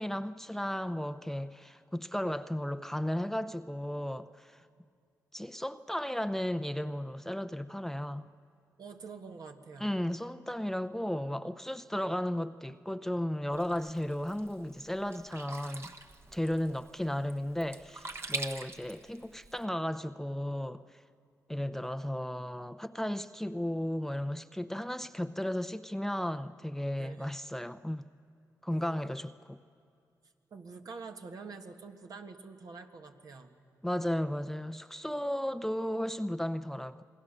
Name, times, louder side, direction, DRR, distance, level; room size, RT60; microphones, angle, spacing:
voice 1, 0.0-4.7 5.3-8.3 9.8-15.9 16.3-20.8 21.5-28.1 28.6-29.6 33.8-37.0, left 1 dB, 5° left, 0.7 m, -34 dB
voice 2, 8.8-9.9 16.4-16.8 27.0-27.3 28.7-29.2 30.5-33.6, right 4 dB, 60° right, 1.7 m, -47 dB
Sink (filling or washing), 13.5-19.6, right 3 dB, 40° right, 1.4 m, -44 dB
28.0 x 21.0 x 6.6 m
supercardioid pair, 50°, 7 cm